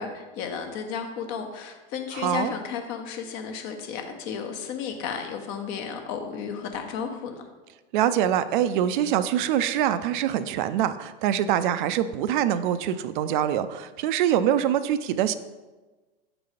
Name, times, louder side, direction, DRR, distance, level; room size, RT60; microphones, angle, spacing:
voice 1, 0.0-7.4, left 6 dB, 45° left, 5 dB, 1.0 m, -33 dB
voice 2, 2.1-2.5 7.9-15.4, right 10 dB, 55° right, 13 dB, 0.5 m, -24 dB
6.4 x 4.0 x 5.0 m, 1.2 s
hypercardioid pair, 100°, 31 cm